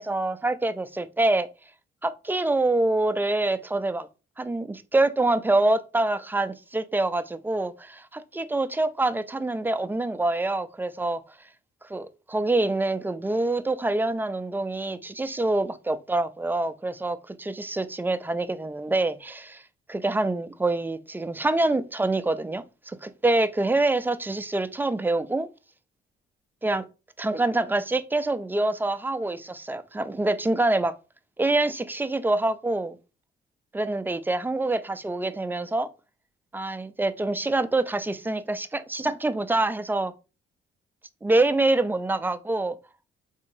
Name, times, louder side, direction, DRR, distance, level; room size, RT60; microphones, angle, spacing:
voice 1, 0.0-1.5 2.0-4.1 4.4-11.2 11.8-19.6 19.9-25.5 26.6-26.8 27.2-30.9 31.4-33.0 33.7-35.9 36.5-40.1 41.2-42.8, right 2 dB, 10° right, 0.3 m, -26 dB
3.9 x 2.7 x 2.5 m
cardioid pair, 90°, 20 cm